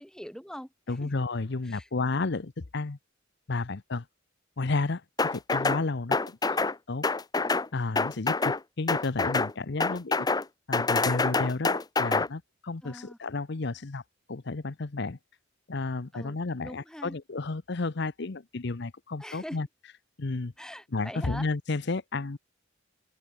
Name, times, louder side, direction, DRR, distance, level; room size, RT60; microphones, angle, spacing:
voice 1, 0.0-1.1 1.6-1.9 12.8-13.2 16.1-17.2 19.2-19.6 20.6-21.5, equal, 5° left, 3.8 m, -43 dB
voice 2, 0.9-3.0 3.5-4.1 4.6-5.0 5.3-6.6 6.9-7.1 7.7-10.3 10.7-14.0 14.3-15.2 15.7-19.7 20.2-20.5 20.9-22.4, left 3 dB, 60° left, 0.8 m, -32 dB
sound 1, 5.2-5.8 6.1-6.8 7.0-7.7 8.0-8.6 8.9-9.5 9.8-10.4 10.7-12.3, left 3 dB, 20° left, 0.7 m, -26 dB
open air
head